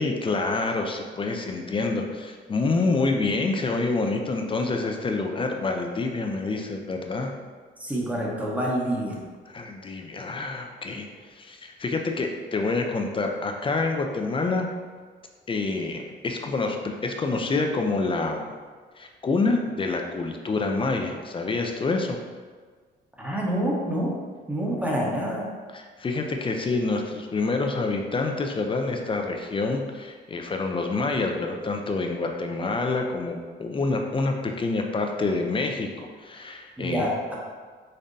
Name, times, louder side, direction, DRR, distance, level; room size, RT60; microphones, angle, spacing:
voice 1, 0.0-7.3 9.5-11.1 11.4-14.7 15.5-18.5 19.0-22.2 25.7-37.1, left 3 dB, 25° left, 3 dB, 0.4 m, -27 dB
voice 2, 7.8-9.2 23.2-24.1 24.5-25.5 36.8-37.3, equal, 5° right, -4 dB, 0.8 m, -27 dB
5.2 x 2.1 x 2.6 m, 1.5 s
cardioid pair, 90°, 20 cm